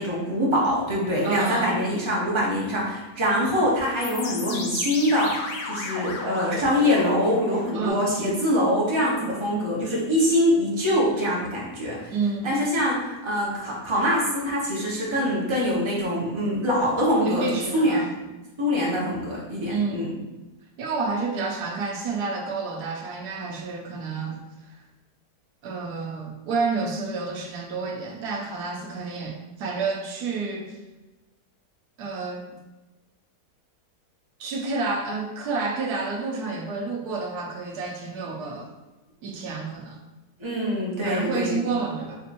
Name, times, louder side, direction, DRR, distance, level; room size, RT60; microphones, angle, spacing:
voice 1, 0.0-12.1 12.4-18.3 18.6-20.1 40.4-41.6, equal, 25° right, -5 dB, 0.7 m, -24 dB
voice 2, 1.2-1.8 7.7-8.0 12.1-12.6 17.2-18.1 19.7-20.1 20.8-24.8 25.6-30.8 32.0-32.4 34.4-38.7 39.2-40.0 41.0-42.2, right 4 dB, 70° right, 1 dB, 1.2 m, -29 dB
sound 1, 4.0-7.9, left 3 dB, 70° left, 1.1 m, -34 dB
5.1 x 2.8 x 2.6 m, 1.1 s
omnidirectional pair, 1.8 m